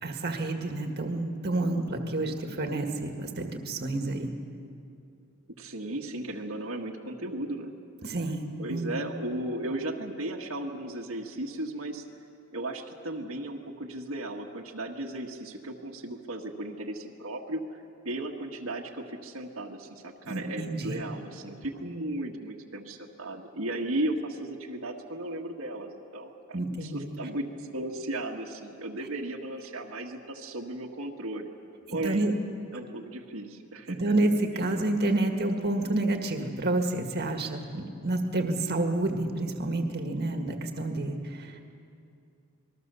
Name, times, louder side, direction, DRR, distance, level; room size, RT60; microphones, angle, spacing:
voice 1, 0.0-4.3 8.0-8.9 20.3-21.0 26.5-27.1 31.9-32.3 33.9-41.6, right 2 dB, 45° right, 4 dB, 1.8 m, -29 dB
voice 2, 5.6-7.7 8.6-12.0 12.5-31.5 31.9-32.3 32.7-34.0 34.5-34.7, right 1 dB, 70° right, 0 dB, 1.6 m, -35 dB
26.5 x 21.0 x 6.9 m, 2.5 s
head